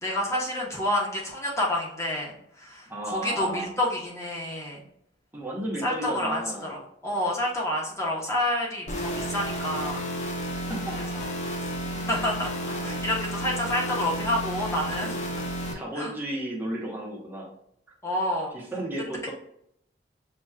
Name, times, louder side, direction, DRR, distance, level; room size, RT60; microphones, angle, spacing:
voice 1, 0.0-4.8 5.8-10.1 11.0-11.3 12.1-12.5 12.8-15.1 16.0-16.1 18.0-18.5, left 1 dB, 15° left, -3 dB, 1.1 m, -29 dB
voice 2, 2.9-3.7 5.3-6.8 10.5-11.0 12.6-13.0 15.0-15.1 15.7-17.5 18.5-19.3, right 1 dB, 10° right, -3 dB, 1.1 m, -34 dB
sound 1, 8.9-15.7, equal, 40° left, 0.8 m, -32 dB
7.0 x 3.0 x 2.4 m, 0.73 s
head